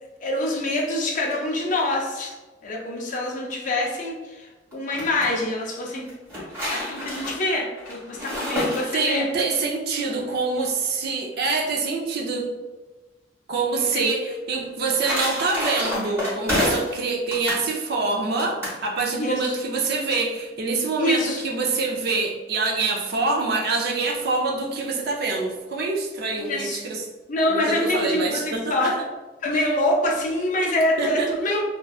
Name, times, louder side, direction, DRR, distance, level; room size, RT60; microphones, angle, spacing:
voice 1, 0.2-2.3 2.6-6.1 6.7-9.3 13.8-14.3 19.2-19.6 21.0-21.4 26.4-26.8 27.3-29.0 29.4-31.6, left 1 dB, 45° left, 0 dB, 0.4 m, -25 dB
sound 1, 4.7-5.3 6.1-9.4 14.5-17.0 17.3-17.7 18.4-18.8, left 1 dB, 15° right, 1.1 m, -28 dB
voice 2, 8.9-12.5 13.5-27.0 27.5-28.9 31.0-31.3, right 3 dB, 55° right, 0 dB, 0.4 m, -25 dB
2.5 x 2.2 x 2.3 m, 1.2 s
head